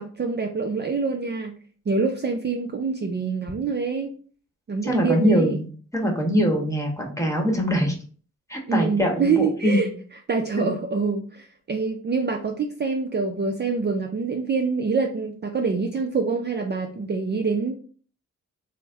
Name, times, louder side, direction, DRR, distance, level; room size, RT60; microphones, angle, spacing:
voice 1, 0.0-1.5 1.9-4.1 4.7-5.6 8.7-9.9 10.3-17.7, right 4 dB, 35° right, 2 dB, 0.5 m, -25 dB
voice 2, 4.8-5.5 5.9-7.9 8.5-9.8 10.6-10.7, equal, 10° left, 1 dB, 1.1 m, -22 dB
3.2 x 2.1 x 3.4 m, 0.42 s
cardioid pair, 50°, 31 cm